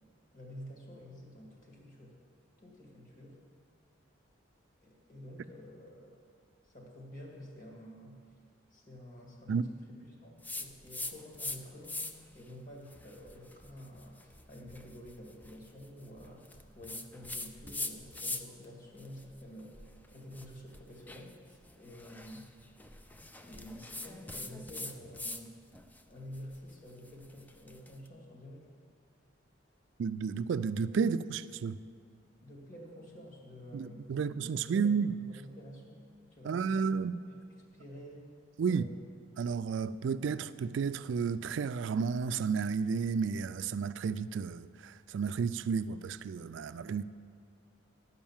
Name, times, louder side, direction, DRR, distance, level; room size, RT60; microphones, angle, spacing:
voice 1, 0.3-2.1 2.6-3.4 4.8-6.1 6.6-8.2 8.7-12.1 12.3-22.5 23.4-25.5 26.1-28.7 32.4-34.1 34.6-36.8 37.3-37.4 37.7-38.3 38.6-38.9, equal, 45° left, 2.1 m, -50 dB
sound 1, 10.4-11.6 11.8-12.3 12.9-18.6 19.0-25.4 25.7-27.9, left 2 dB, 10° left, 0.4 m, -43 dB
voice 2, 30.0-31.8 33.7-35.2 36.4-37.2 38.6-38.8 39.4-47.0, right 5 dB, 70° right, 0.3 m, -32 dB
11.5 x 5.4 x 7.2 m
head